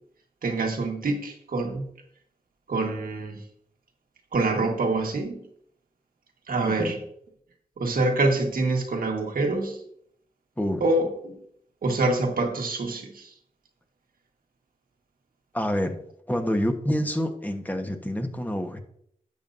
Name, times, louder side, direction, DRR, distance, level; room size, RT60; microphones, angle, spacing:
voice 1, 0.4-1.8 2.7-3.4 4.3-5.4 6.5-7.0 7.8-9.8 10.8-11.3 11.8-13.3, right 2 dB, 85° right, 2 dB, 1.6 m, -25 dB
voice 2, 6.6-7.0 10.6-10.9 15.5-16.0 16.3-18.8, equal, 10° left, 5 dB, 1.2 m, -27 dB
11.5 x 7.0 x 2.7 m, 0.69 s
cardioid pair, 60°, 14 cm